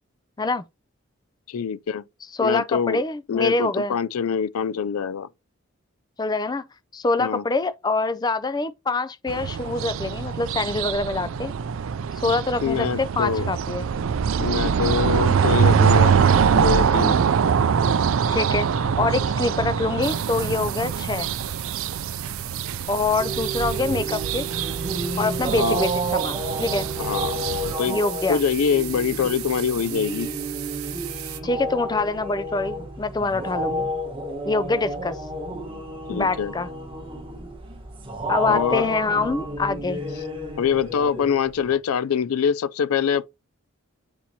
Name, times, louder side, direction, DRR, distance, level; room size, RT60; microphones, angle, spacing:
voice 1, 1.5-2.0 2.4-3.0 3.3-5.3 7.2-7.4 12.6-13.5 14.4-16.1 16.5-17.2 25.6-25.8 27.0-27.4 27.8-28.0 28.3-30.3 36.1-36.5 38.5-38.9 40.6-43.3, left 7 dB, 90° left, 0.4 m, -24 dB
voice 2, 2.3-3.9 6.2-6.6 6.9-11.5 12.2-13.9 18.3-21.3 22.9-24.5 25.2-26.9 27.9-28.4 31.4-33.9 34.5-35.2 36.1-36.7 38.3-40.0, left 3 dB, 20° left, 0.4 m, -25 dB
sound 1, 9.3-27.7, right 7 dB, 70° right, 0.4 m, -23 dB
sound 2, 20.0-31.4, right 15 dB, 90° right, 0.8 m, -36 dB
sound 3, 23.2-41.8, right 1 dB, 25° right, 1.2 m, -31 dB
8.6 x 4.3 x 2.8 m
head